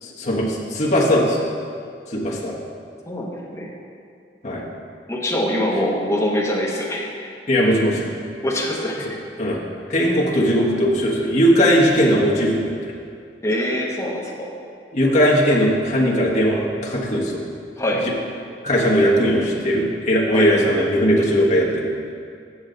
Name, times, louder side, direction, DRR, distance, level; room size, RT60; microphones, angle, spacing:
voice 1, 0.0-1.4 2.1-2.5 4.4-4.6 7.5-8.1 9.4-9.6 9.9-12.9 14.9-17.4 18.6-21.9, equal, 45° left, -5 dB, 1.4 m, -19 dB
voice 2, 3.1-3.7 5.1-7.3 8.4-9.2 13.4-14.5 17.8-18.0 20.3-20.5, left 1 dB, 15° left, -3 dB, 1.1 m, -24 dB
8.7 x 7.2 x 3.9 m, 2.3 s
head